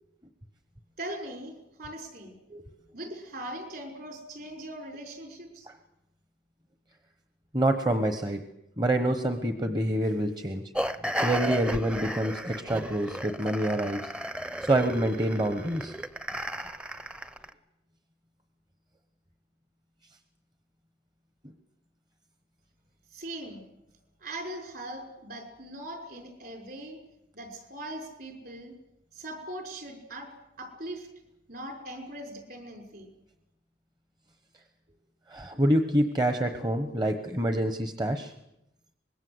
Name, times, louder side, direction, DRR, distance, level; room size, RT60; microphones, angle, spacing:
voice 1, 1.0-2.3 2.9-5.7 23.1-23.6 24.2-27.0 27.3-28.7 29.1-30.3 30.6-31.1 31.5-33.1, right 1 dB, 55° right, 5 dB, 5.5 m, -40 dB
voice 2, 7.5-8.4 8.8-10.6 11.1-14.1 14.6-15.9 35.3-38.3, right 1 dB, 25° right, 8 dB, 1.1 m, -27 dB
sound 1, 10.7-17.5, equal, 5° right, 0.8 m, -34 dB
25.0 x 21.0 x 8.0 m, 0.87 s
head